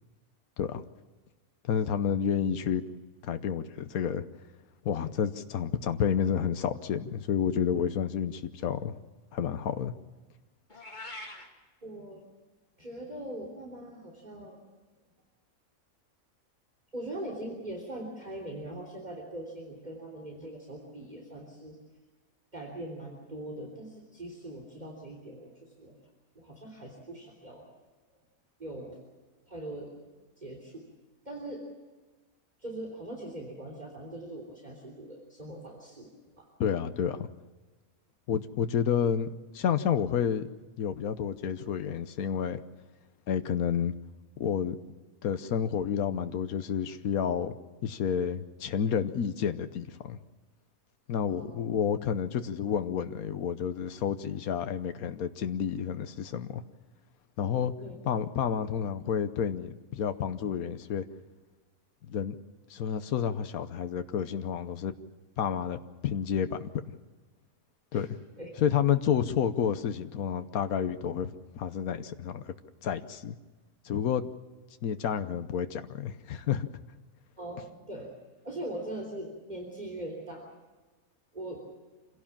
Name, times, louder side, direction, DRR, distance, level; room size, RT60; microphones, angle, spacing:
voice 1, 1.6-2.8 3.2-4.2 4.8-9.0 9.3-9.9 36.6-37.3 38.3-40.5 40.8-42.6 43.3-43.9 44.4-44.8 45.2-47.5 47.8-50.2 51.1-56.6 57.4-57.7 58.1-61.0 62.1-62.3 62.7-64.9 65.4-66.9 67.9-68.1 68.6-72.5 72.8-73.3 73.8-74.3 74.8-76.8, left 8 dB, 85° left, 10 dB, 1.4 m, -30 dB
Meow, 10.7-11.5, left 2 dB, 30° left, 2.7 m, -42 dB
voice 2, 11.8-12.2 12.8-14.6 16.9-21.8 22.5-26.0 26.4-27.6 28.6-29.0 29.5-30.1 30.4-30.9 31.3-31.7 32.6-36.5 51.3-51.6 57.8-58.0 67.9-68.1 68.4-68.5 77.4-78.1 78.4-80.5 81.3-81.6, right 1 dB, 30° right, 0 dB, 3.6 m, -41 dB
26.5 x 17.0 x 7.3 m, 1.3 s
omnidirectional pair, 1.5 m